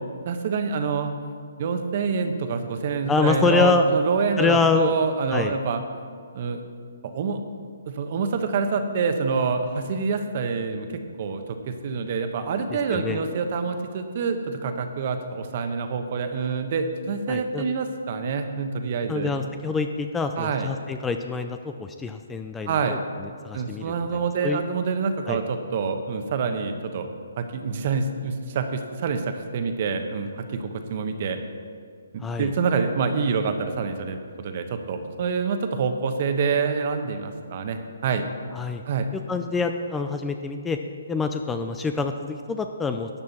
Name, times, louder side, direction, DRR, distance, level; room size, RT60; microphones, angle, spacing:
voice 1, 0.2-1.1 1.6-5.8 6.3-6.6 7.1-7.4 7.9-19.6 20.4-20.7 22.7-23.0 23.5-27.1 27.4-31.4 32.1-38.2 38.9-39.1, right 5 dB, 45° right, 7 dB, 1.0 m, -26 dB
voice 2, 3.1-3.8 4.4-4.9 5.3-5.6 12.9-13.2 17.3-17.7 19.1-23.0 23.4-23.9 24.4-24.6 25.3-25.4 32.2-32.5 38.5-38.8 39.3-40.8 41.1-43.1, left 4 dB, 10° left, 6 dB, 0.4 m, -25 dB
12.5 x 8.6 x 4.2 m, 2.1 s
hypercardioid pair, 150°, 0 cm